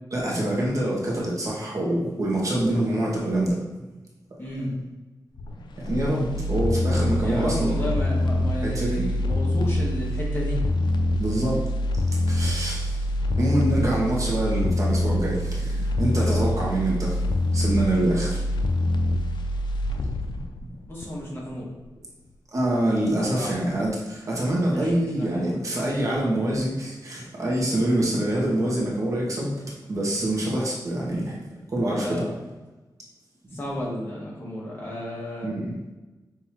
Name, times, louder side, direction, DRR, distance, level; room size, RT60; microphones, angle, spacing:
voice 1, 0.1-3.6 5.8-7.8 8.6-9.1 11.2-11.6 12.3-13.0 13.4-17.2 17.5-18.5 20.3-20.4 22.5-31.4 31.7-32.2 35.4-35.8, right 1 dB, 45° right, -4 dB, 1.0 m, -25 dB
voice 2, 4.4-4.7 7.2-10.6 16.2-16.4 20.9-21.7 23.3-23.5 24.7-25.6 32.0-32.3 33.5-35.5, equal, 30° left, -5 dB, 1.3 m, -32 dB
sound 1, 5.4-21.5 21.8-21.9, left 1 dB, 85° left, 0.3 m, -25 dB
5.8 x 2.6 x 3.0 m, 1.1 s
wide cardioid pair, 140°, 8 cm